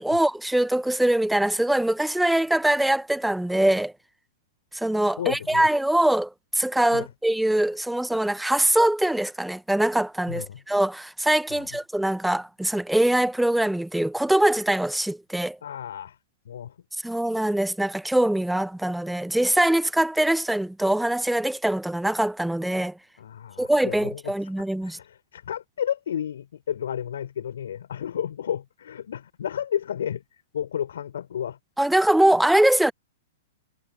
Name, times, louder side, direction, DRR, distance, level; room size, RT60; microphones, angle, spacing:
voice 1, 0.0-3.9 4.7-6.3 6.5-15.6 17.0-22.9 23.6-25.0 31.8-32.9, right 1 dB, 5° right, 1.0 m, -23 dB
voice 2, 5.2-5.7 6.9-7.1 10.3-10.6 11.5-11.7 15.6-16.2 16.5-16.7 23.2-24.3 24.8-30.2 30.5-31.6, left 9 dB, 70° left, 5.4 m, -32 dB
hypercardioid pair, 115°, 0 cm